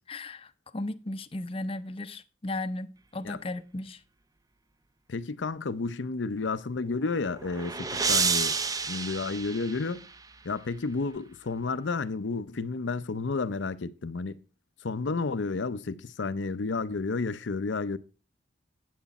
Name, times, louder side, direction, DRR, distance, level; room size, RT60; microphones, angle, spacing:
voice 1, 0.1-4.0, left 2 dB, 30° left, 0.6 m, -36 dB
voice 2, 5.1-8.6 8.9-10.1 10.4-14.4 14.8-18.0, left 4 dB, 85° left, 0.6 m, -31 dB
sound 1, 6.9-10.3, right 5 dB, 20° right, 0.5 m, -30 dB
9.3 x 8.4 x 4.1 m
head